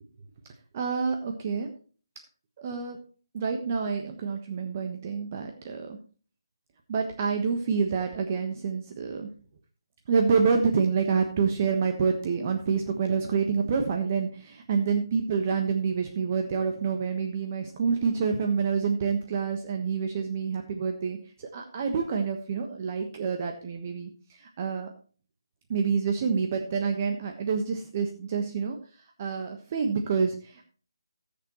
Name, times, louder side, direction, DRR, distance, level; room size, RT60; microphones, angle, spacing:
voice 1, 0.7-1.7 2.6-3.0 3.3-6.0 6.9-9.3 10.1-24.1 24.4-24.9 25.7-28.8 29.2-30.7, right 5 dB, 35° right, 3 dB, 1.3 m, -27 dB
19.0 x 6.7 x 3.1 m, 0.39 s
figure-of-eight pair, 150°, 2 cm